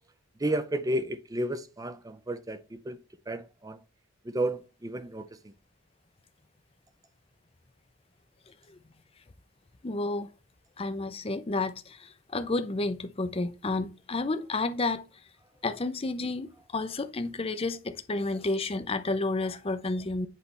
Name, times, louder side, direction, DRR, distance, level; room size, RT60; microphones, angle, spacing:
voice 1, 0.4-3.0 3.3-3.8 4.2-5.5, right 1 dB, 20° right, 0.5 m, -32 dB
voice 2, 9.8-10.3 10.8-15.0 15.6-20.3, left 2 dB, 30° left, 0.6 m, -31 dB
8.2 x 3.3 x 5.3 m
head